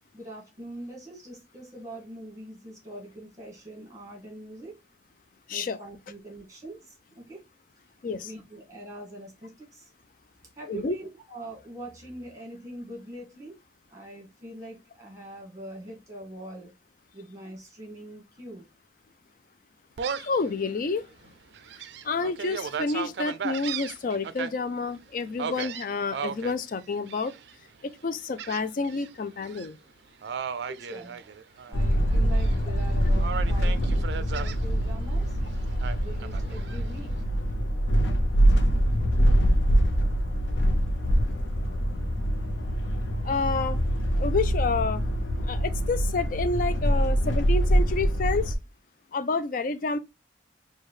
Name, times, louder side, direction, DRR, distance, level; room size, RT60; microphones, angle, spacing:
voice 1, 0.1-4.7 5.5-7.4 8.1-9.9 10.5-13.6 13.9-16.7 17.1-18.6 30.7-31.2 31.7-35.4 36.0-37.3, right 1 dB, 20° right, 1.7 m, -43 dB
Gull seagull, 20.0-20.4 20.9-21.0 21.5-24.5 25.4-26.5 27.1-27.5 28.4-29.1 29.4-29.7 30.2-31.8 32.1-32.8 33.2-34.6 35.8-36.8, right 7 dB, 65° right, 0.4 m, -35 dB
voice 2, 20.2-21.1 22.0-27.3 28.0-29.8 43.2-43.8 44.2-45.0 45.5-48.5 49.1-50.0, left 4 dB, 50° left, 0.4 m, -29 dB
sound 1, 31.7-48.5, equal, 80° left, 0.6 m, -24 dB
4.5 x 2.3 x 3.1 m
head